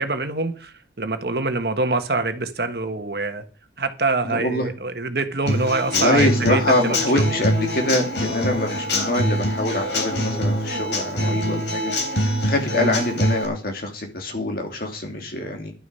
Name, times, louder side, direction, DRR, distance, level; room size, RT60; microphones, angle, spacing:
voice 1, 0.0-3.4 3.8-7.3 12.8-13.0, right 3 dB, 60° right, 1.3 m, -25 dB
voice 2, 4.2-4.7 5.9-15.7, left 1 dB, 55° left, 2.5 m, -25 dB
Human voice / Acoustic guitar / Drum, 5.5-13.4, equal, 80° left, 3.4 m, -24 dB
11.5 x 9.5 x 5.6 m
head